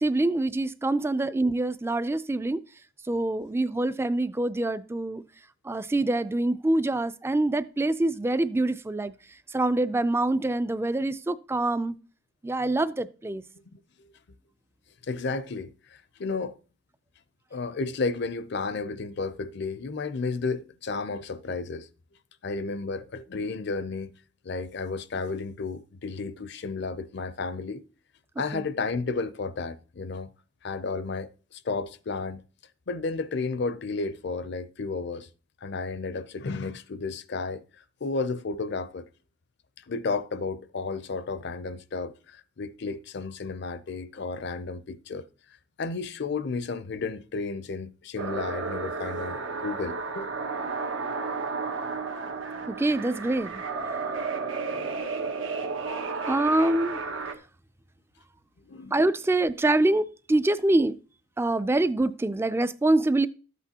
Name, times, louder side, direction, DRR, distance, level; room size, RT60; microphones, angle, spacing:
voice 1, 0.0-2.6 3.1-5.2 5.7-9.1 9.5-11.9 12.4-13.4 28.5-28.6 52.7-53.6 56.3-57.0 58.9-61.0 61.4-63.3, right 2 dB, 15° right, 0.3 m, -25 dB
voice 2, 15.1-15.7 16.2-16.6 17.5-21.9 22.4-24.1 24.4-27.8 28.4-30.3 30.6-32.4 32.9-35.3 35.6-37.6 38.0-39.1 39.9-45.3 45.8-50.3 58.7-59.0, left 4 dB, 60° left, 0.5 m, -32 dB
sound 1, 48.2-57.3, right 4 dB, 85° right, 1.2 m, -32 dB
13.0 x 8.2 x 2.9 m
head